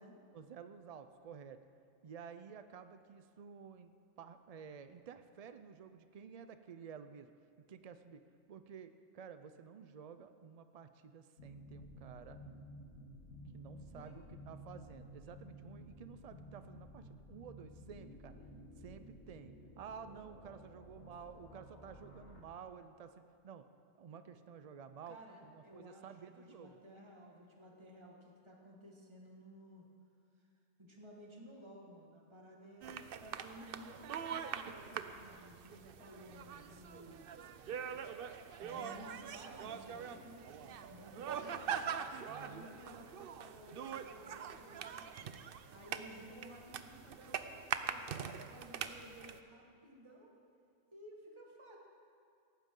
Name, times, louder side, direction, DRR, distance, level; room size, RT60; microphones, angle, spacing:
voice 1, 0.3-1.6 2.0-7.3 7.7-8.2 8.5-12.4 13.5-18.4 18.8-23.7 24.0-25.2 25.4-26.8 42.3-42.7, right 7 dB, 80° right, 10 dB, 0.3 m, -52 dB
sound 1, 11.4-22.4, equal, 80° left, 1.9 m, -54 dB
voice 2, 20.9-21.5 25.1-29.9 30.4-30.5 30.8-37.8 38.6-42.0 42.4-45.3 45.7-48.1 48.5-50.3 50.9-51.8, equal, 20° right, -1 dB, 1.8 m, -56 dB
sound 2, 32.8-49.4, right 7 dB, 55° right, 0.7 m, -43 dB
18.5 x 14.5 x 3.8 m, 2.4 s
omnidirectional pair, 1.3 m